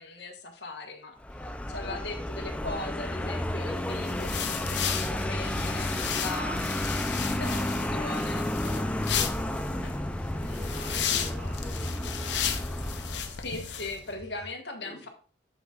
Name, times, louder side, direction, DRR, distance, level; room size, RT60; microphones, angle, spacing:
voice 1, 0.0-7.6 7.9-8.5 13.3-15.1, left 2 dB, 70° left, 4 dB, 1.4 m, -39 dB
Vehicle, 1.2-13.5, left 1 dB, 5° left, 0.4 m, -32 dB
sound 1, 3.8-14.0, left 8 dB, 90° left, 0.8 m, -34 dB
sound 2, 4.2-14.5, equal, 35° left, 3.7 m, -48 dB
voice 2, 7.2-9.9 10.3-12.6 14.8-15.0, equal, 35° right, -3 dB, 2.4 m, -46 dB
7.9 x 7.1 x 2.4 m, 0.41 s
head